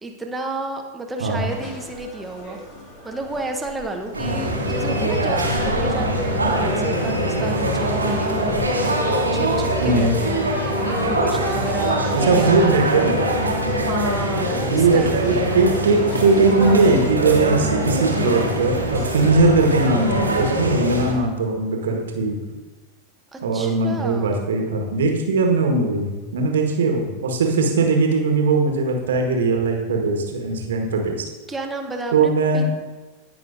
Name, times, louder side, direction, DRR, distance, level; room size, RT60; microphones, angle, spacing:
voice 1, 0.0-2.6 3.0-8.4 9.0-12.7 13.7-15.5 23.3-24.3 31.5-32.7, right 2 dB, 10° right, 3 dB, 1.0 m, -31 dB
sound 1, 1.3-20.2, left 1 dB, 35° left, 2.0 m, -37 dB
sound 2, 4.1-21.1, right 1 dB, 80° right, 1.4 m, -23 dB
voice 2, 9.8-10.1 12.1-13.2 14.7-22.4 23.4-31.2 32.1-32.7, right 3 dB, 65° right, 2 dB, 1.4 m, -19 dB
17.0 x 5.9 x 2.6 m, 1.2 s
figure-of-eight pair, 90°, 0 cm